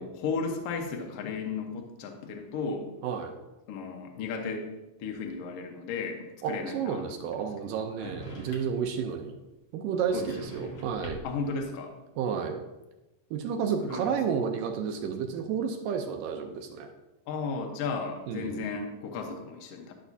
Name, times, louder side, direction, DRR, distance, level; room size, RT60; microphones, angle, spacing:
voice 1, 0.0-2.9 3.7-4.7 5.0-7.0 7.4-7.5 8.0-8.2 10.1-10.8 11.2-11.9 13.8-14.1 17.3-19.9, left 4 dB, 80° left, 3 dB, 1.3 m, -34 dB
voice 2, 3.0-3.4 6.4-9.4 9.7-11.2 12.2-12.6 13.3-16.9 18.3-18.7, right 7 dB, 80° right, 4 dB, 2.1 m, -31 dB
sound 1, 8.0-8.9 10.0-11.4, equal, 50° left, 1.3 m, -44 dB
12.0 x 6.3 x 2.7 m, 1.0 s
omnidirectional pair, 4.2 m